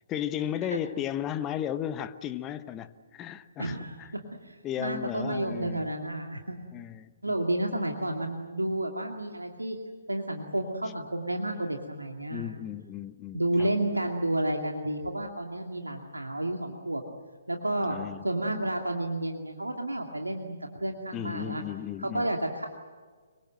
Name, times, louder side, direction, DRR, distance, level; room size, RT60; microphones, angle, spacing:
voice 1, 0.1-4.1 4.6-5.9 6.7-7.4 12.3-13.7 17.8-18.2 21.1-22.3, left 10 dB, 20° left, 12 dB, 1.0 m, -35 dB
voice 2, 3.6-6.6 7.2-9.8 10.1-12.6 13.3-17.0 17.5-18.0 18.2-21.6 22.0-22.7, right 1 dB, 90° right, 3 dB, 2.5 m, -31 dB
26.0 x 23.5 x 7.8 m, 1.5 s
figure-of-eight pair, 130°, 0 cm